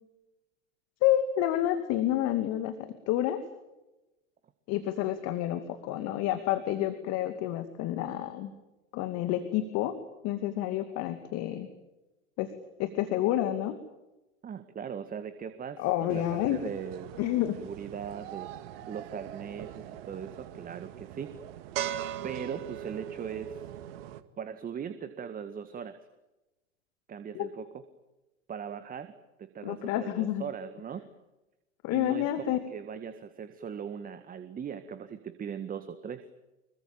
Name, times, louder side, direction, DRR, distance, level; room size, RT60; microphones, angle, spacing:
voice 1, 1.0-3.4 4.7-8.5 8.9-10.0 10.2-11.7 12.4-12.5 12.8-13.8 15.8-16.6 17.2-17.6 27.3-27.5 29.6-30.4 31.8-32.6, left 13 dB, 45° left, 9 dB, 2.5 m, -29 dB
voice 2, 14.4-17.1 17.6-18.5 18.9-21.4 22.2-23.6 24.4-26.0 27.1-27.8 28.5-29.1 29.4-31.1 31.9-36.2, right 7 dB, 25° right, 10 dB, 1.8 m, -39 dB
sound 1, 16.1-24.2, right 11 dB, 55° right, 2.1 m, -40 dB
26.0 x 23.0 x 9.0 m, 1.0 s
figure-of-eight pair, 90°, 36 cm